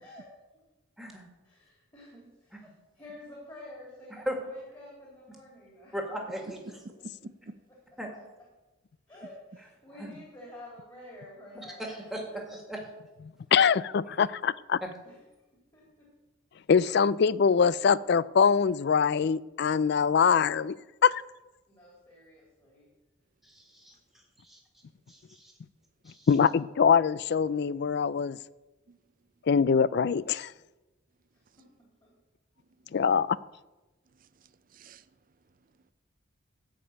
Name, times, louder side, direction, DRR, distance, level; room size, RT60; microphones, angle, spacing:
voice 1, 1.0-1.3 2.5-2.7 4.1-4.4 5.3-5.4 5.9-6.8 8.0-8.1 9.6-10.1 11.5-12.8 13.5-13.7 14.2-14.3 14.8-14.9 23.4-25.6 26.0-26.4, equal, ahead, 2.0 m, -39 dB
voice 2, 1.5-2.5 3.0-5.9 9.1-11.8 12.3-12.4 15.7-16.1 21.7-22.9 31.3-32.1, left 1 dB, 20° left, 3.2 m, -49 dB
voice 3, 7.0-7.6 28.9-29.0 31.5-31.6 32.7-33.0 34.1-35.9, right 2 dB, 40° right, 0.4 m, -51 dB
voice 4, 13.5-14.8 16.7-21.2 26.1-28.4 29.4-30.5 32.9-33.4, left 6 dB, 50° left, 0.3 m, -24 dB
14.0 x 5.3 x 8.7 m
head